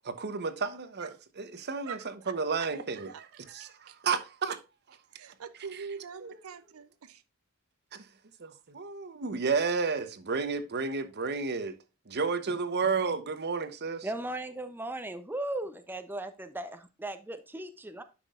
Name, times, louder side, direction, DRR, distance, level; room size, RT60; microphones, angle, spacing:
voice 1, 0.0-1.1 1.4-2.0 2.3-4.6 6.2-6.3 7.9-8.0 8.4-11.7 12.1-14.1, right 5 dB, 50° right, 0.8 m, -32 dB
voice 2, 1.9-2.7 3.0-3.2 3.6-4.0 5.1-7.2, right 6 dB, 75° right, 0.5 m, -44 dB
voice 3, 14.0-18.0, right 1 dB, 10° right, 0.6 m, -37 dB
10.0 x 6.0 x 2.4 m
head